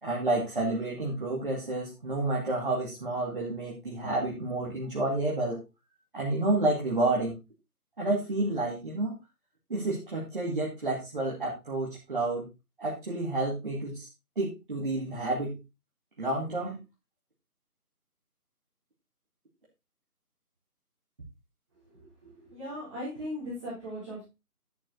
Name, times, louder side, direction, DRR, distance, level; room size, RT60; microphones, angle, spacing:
voice 1, 0.0-5.6 6.1-7.4 8.0-9.1 9.7-12.5 12.8-14.1 14.4-15.6 16.2-16.8, right 2 dB, 35° right, -4 dB, 2.3 m, -30 dB
voice 2, 22.2-24.2, equal, 20° right, -8 dB, 4.2 m, -38 dB
10.5 x 7.6 x 3.9 m, 0.25 s
figure-of-eight pair, 160°, 46 cm